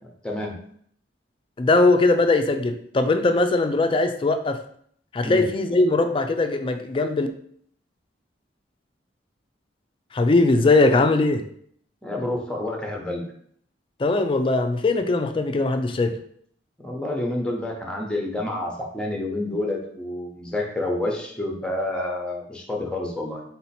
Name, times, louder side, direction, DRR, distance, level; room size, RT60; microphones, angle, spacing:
voice 1, 0.2-0.6 5.2-5.5 12.0-13.3 16.8-23.4, left 1 dB, 5° left, 0 dB, 0.7 m, -28 dB
voice 2, 1.6-4.6 5.1-7.3 10.1-11.4 14.0-16.2, left 2 dB, 30° left, 7 dB, 0.3 m, -20 dB
3.9 x 2.8 x 4.1 m, 0.63 s
head